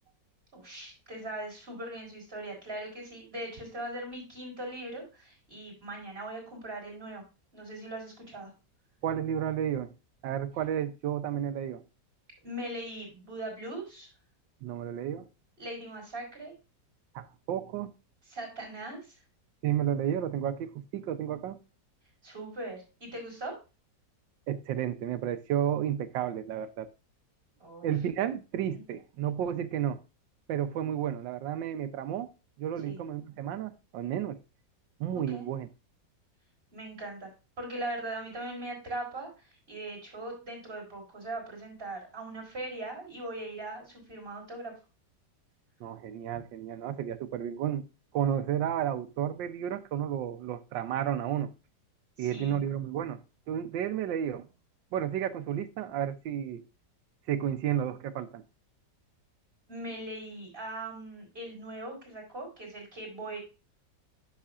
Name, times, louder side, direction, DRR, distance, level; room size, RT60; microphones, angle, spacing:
voice 1, 0.5-7.2 7.5-8.5 12.4-14.1 15.6-16.5 18.3-19.2 22.2-23.6 27.6-27.9 32.8-33.0 35.1-35.5 36.7-37.3 37.6-44.7 52.2-52.6 59.7-63.4, right 1 dB, 30° right, 4.3 m, -40 dB
voice 2, 9.0-9.9 10.2-11.8 14.6-15.3 17.1-17.9 19.6-21.6 24.5-26.9 27.8-30.0 30.5-32.3 32.6-34.4 35.0-35.7 45.8-47.8 48.1-51.5 52.2-54.5 54.9-56.6 57.3-58.4, right 10 dB, 90° right, 1.5 m, -32 dB
10.0 x 6.7 x 2.4 m
omnidirectional pair, 1.9 m